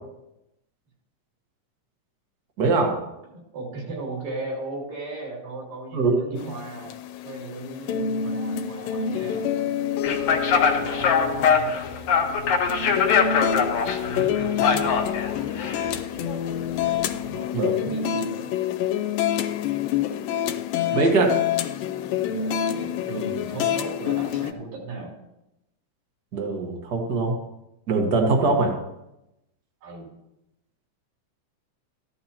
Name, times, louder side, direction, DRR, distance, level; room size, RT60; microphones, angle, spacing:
voice 1, 2.6-2.9 5.9-6.5 17.5-17.7 20.9-21.4 26.3-27.3 27.9-28.7, right 3 dB, 50° right, 2 dB, 1.2 m, -22 dB
voice 2, 3.3-6.9 7.2-9.4 10.3-11.8 12.9-15.1 17.0-18.5 22.2-25.2 29.8-30.1, right 2 dB, 75° right, -2 dB, 4.5 m, -37 dB
sound 1, 6.4-24.5, left 9 dB, 85° left, 2.4 m, -27 dB
sound 2, 10.0-17.3, left 6 dB, 65° left, 2.3 m, -23 dB
14.0 x 11.0 x 2.9 m, 0.89 s
omnidirectional pair, 3.9 m